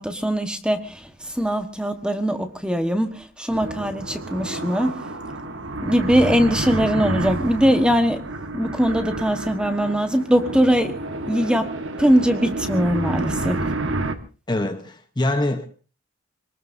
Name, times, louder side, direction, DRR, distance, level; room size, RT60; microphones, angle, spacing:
voice 1, 0.0-5.0 5.8-10.9 11.3-11.7 12.0-13.6, equal, 5° right, 7 dB, 1.3 m, -21 dB
sound 1, 3.5-14.1, right 2 dB, 60° right, 1.5 m, -29 dB
voice 2, 14.5-15.7, left 1 dB, 20° left, 6 dB, 1.0 m, -24 dB
26.0 x 19.0 x 2.7 m, 0.35 s
head